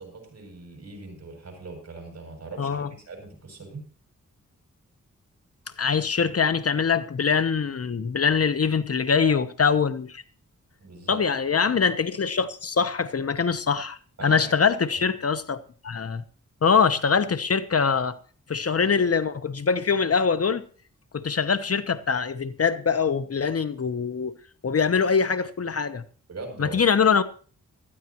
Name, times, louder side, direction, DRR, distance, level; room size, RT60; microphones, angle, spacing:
voice 1, 0.0-3.8 9.2-9.4 10.8-11.2 14.2-14.5 26.3-26.8, right 3 dB, 55° right, 7.7 m, -40 dB
voice 2, 2.6-2.9 5.8-10.2 11.1-15.6 15.8-16.2 16.6-18.2 18.5-20.6 21.1-24.4 24.6-26.0 26.6-27.2, left 6 dB, 50° left, 0.9 m, -23 dB
18.5 x 13.5 x 3.0 m
wide cardioid pair, 95°, 31 cm